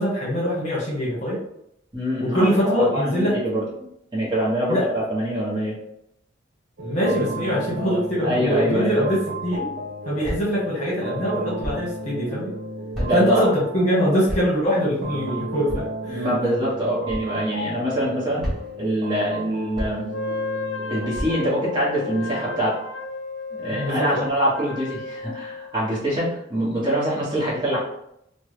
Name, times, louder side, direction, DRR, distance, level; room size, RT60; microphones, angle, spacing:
voice 1, 0.0-1.4 2.2-3.4 4.7-4.9 6.8-9.7 10.0-12.5 13.1-16.2 23.8-24.3, equal, 40° left, -6 dB, 1.1 m, -23 dB
voice 2, 1.9-3.6 4.1-5.7 8.2-9.0 13.0-13.5 16.1-18.5 18.8-20.1 20.9-22.8 23.5-27.8, right 1 dB, 25° right, -8 dB, 1.1 m, -24 dB
sound 1, 6.8-22.6, right 2 dB, 55° right, 0.4 m, -34 dB
sound 2, 10.2-10.6 11.6-12.0 12.9-13.4 14.3-14.6 15.7-16.0 17.1-17.3 18.4-18.9 19.7-20.2 21.1-21.6, equal, ahead, 1.1 m, -31 dB
Wind instrument woodwind instrument, 20.1-25.7, left 4 dB, 80° left, 0.5 m, -33 dB
3.3 x 2.2 x 3.2 m, 0.76 s
head